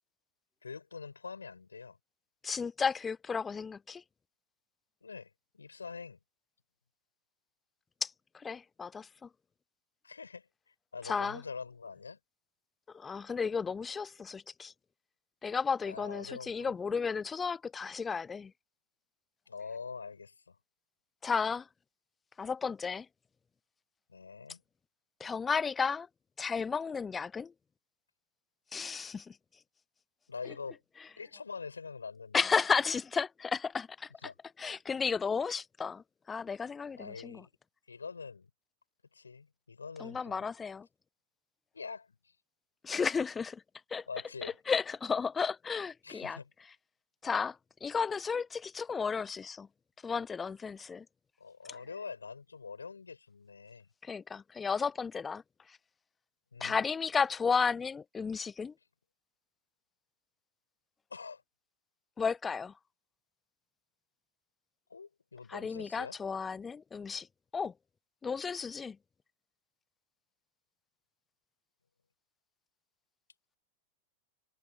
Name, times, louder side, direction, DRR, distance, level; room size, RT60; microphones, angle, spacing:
voice 1, 0.6-2.0 5.0-6.2 10.0-12.2 15.8-16.7 19.5-20.6 24.1-24.6 30.3-30.8 31.2-32.4 34.2-34.3 37.0-37.5 37.9-38.5 39.1-40.4 41.7-42.4 44.1-44.6 46.0-46.5 51.4-53.9 56.5-56.8 61.1-61.4 64.9-66.2, left 5 dB, 75° left, 5.4 m, -44 dB
voice 2, 2.4-4.0 8.0-9.3 11.0-11.4 12.9-14.7 15.4-18.5 21.2-21.7 22.4-23.1 25.2-26.1 26.4-27.5 28.7-29.4 32.3-34.3 34.6-37.4 40.0-40.9 42.8-43.6 43.9-44.0 44.4-46.4 47.2-49.7 50.0-51.1 54.0-55.4 56.6-58.7 62.2-62.7 65.5-67.3 67.5-67.7 68.2-69.0, left 5 dB, 15° left, 0.5 m, -33 dB
figure-of-eight pair, 90°, 0 cm